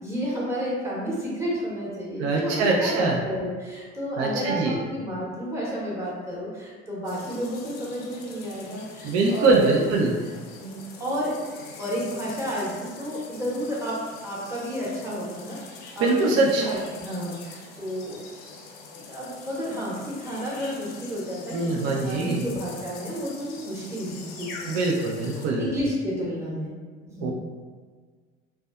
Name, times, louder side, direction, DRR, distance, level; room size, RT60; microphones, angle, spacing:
voice 1, 0.0-9.9 10.6-11.3 11.8-18.2 19.1-24.8 25.6-26.7 27.0-27.3, equal, 10° right, -6 dB, 0.9 m, -31 dB
voice 2, 2.2-3.2 4.2-4.8 9.0-10.1 16.0-16.7 21.5-22.4 24.7-25.7 27.2-27.3, right 3 dB, 50° right, -1 dB, 0.4 m, -23 dB
sound 1, 7.0-25.5, left 4 dB, 65° left, 0.6 m, -44 dB
2.5 x 2.2 x 2.3 m, 1.5 s
hypercardioid pair, 60°, 34 cm